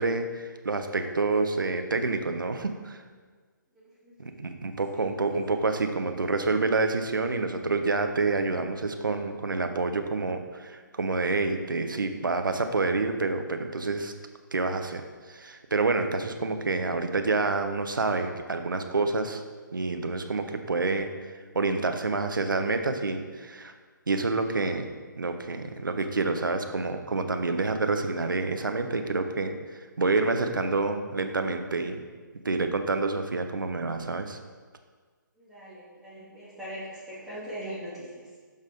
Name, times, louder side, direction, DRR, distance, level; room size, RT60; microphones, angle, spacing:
voice 1, 0.0-3.0 4.2-14.1 14.5-19.4 19.7-23.7 24.1-24.9 25.2-32.0 32.4-34.4, right 3 dB, 75° right, 7 dB, 0.7 m, -28 dB
voice 2, 3.7-4.3 4.9-5.0 5.3-5.4 35.4-38.4, equal, 5° right, -11 dB, 1.8 m, -41 dB
6.7 x 5.3 x 3.8 m, 1.5 s
figure-of-eight pair, 140°, 11 cm